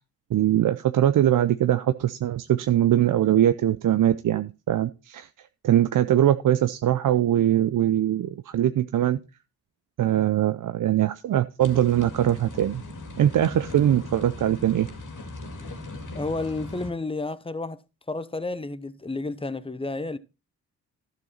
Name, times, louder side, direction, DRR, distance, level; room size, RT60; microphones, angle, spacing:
voice 1, 0.3-5.3 5.6-9.2 10.0-12.8 13.2-14.9, right 11 dB, 50° right, 0.6 m, -22 dB
sound 1, 11.6-16.9, left 2 dB, 45° left, 2.3 m, -39 dB
voice 2, 16.1-17.8 18.1-20.2, left 2 dB, 15° left, 0.8 m, -31 dB
12.0 x 6.6 x 4.2 m
hypercardioid pair, 45°, 43 cm